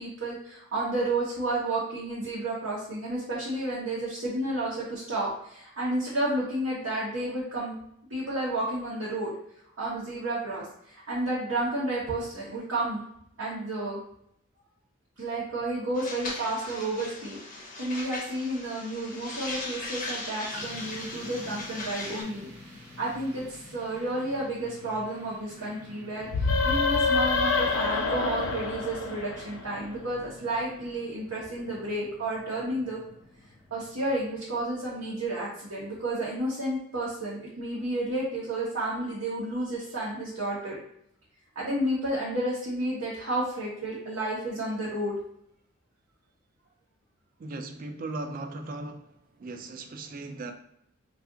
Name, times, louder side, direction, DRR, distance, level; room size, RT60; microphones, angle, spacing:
voice 1, 0.0-7.8 8.1-9.3 9.8-13.0 13.4-14.0 15.2-22.5 23.0-26.3 26.6-33.0 33.7-40.8 41.6-45.1, right 1 dB, 85° right, 0.9 m, -31 dB
sound 1, 16.0-22.2, left 2 dB, 40° left, 0.6 m, -38 dB
sound 2, 20.5-35.2, left 1 dB, 10° right, 0.8 m, -50 dB
sound 3, 26.3-29.9, left 4 dB, 85° left, 0.5 m, -26 dB
voice 2, 47.4-50.5, right 2 dB, 40° right, 0.3 m, -38 dB
2.4 x 2.4 x 3.7 m
head